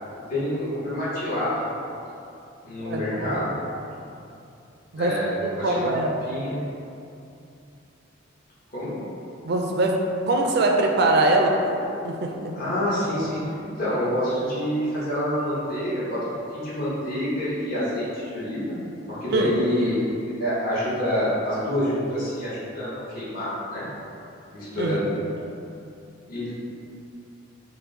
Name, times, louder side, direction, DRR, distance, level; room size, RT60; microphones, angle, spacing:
voice 1, 0.3-1.5 2.6-3.5 5.0-5.3 5.6-5.9 6.2-6.6 8.7-9.0 12.5-13.4 13.8-16.2 16.5-18.8 19.1-23.9 24.5-25.1 26.3-26.5, equal, 45° left, -10 dB, 1.1 m, -27 dB
voice 2, 2.8-3.4 4.9-6.2 9.4-10.0 10.3-11.8 12.0-12.5 19.3-19.5 24.8-25.1, right 2 dB, 50° right, 2 dB, 0.3 m, -23 dB
4.5 x 2.1 x 3.7 m, 2.7 s
head